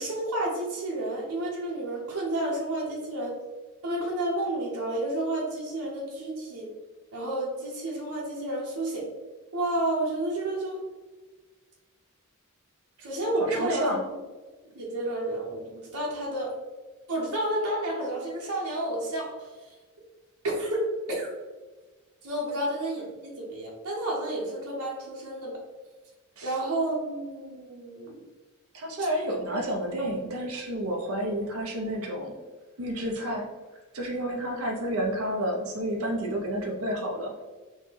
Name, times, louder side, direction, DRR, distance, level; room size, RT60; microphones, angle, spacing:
voice 1, 0.0-3.4 3.8-6.7 7.1-9.0 9.5-10.8 13.0-14.0 14.6-16.5 17.1-19.7 20.4-21.3 22.2-25.5 26.4-28.2, right 1 dB, 90° right, -3 dB, 1.1 m, -30 dB
voice 2, 13.5-14.0 26.4-26.5 28.7-32.3 32.8-33.5 33.9-37.3, equal, 70° right, 0 dB, 0.8 m, -30 dB
5.6 x 2.3 x 3.3 m, 1.3 s
head